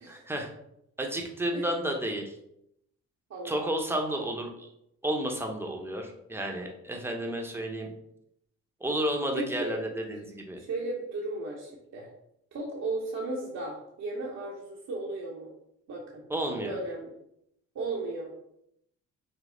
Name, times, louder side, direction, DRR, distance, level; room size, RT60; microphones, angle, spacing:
voice 1, 0.1-0.5 1.0-2.4 3.4-4.7 5.0-7.9 8.8-10.6 16.3-16.8, right 1 dB, 10° right, 2 dB, 0.8 m, -32 dB
voice 2, 3.3-4.3 9.3-9.8 10.6-12.1 12.5-15.5 15.9-16.2 16.6-17.1 17.7-18.3, right 2 dB, 60° right, -3 dB, 0.9 m, -35 dB
5.2 x 2.0 x 3.7 m, 0.77 s
cardioid pair, 90°, 30 cm